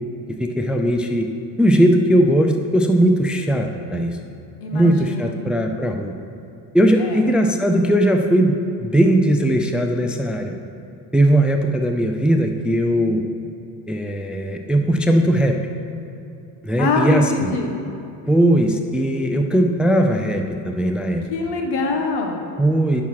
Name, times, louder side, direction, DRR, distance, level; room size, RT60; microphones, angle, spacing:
voice 1, 0.4-1.3 1.6-4.2 4.7-6.1 6.7-10.5 11.1-13.2 13.9-15.5 16.6-17.5 18.3-21.2 22.6-23.0, right 1 dB, 5° right, 4 dB, 0.4 m, -18 dB
voice 2, 4.6-5.3 7.0-7.2 16.8-17.7 21.3-22.4, left 3 dB, 75° left, 3 dB, 1.4 m, -24 dB
9.5 x 5.9 x 5.6 m, 2.8 s
cardioid pair, 130°, 40 cm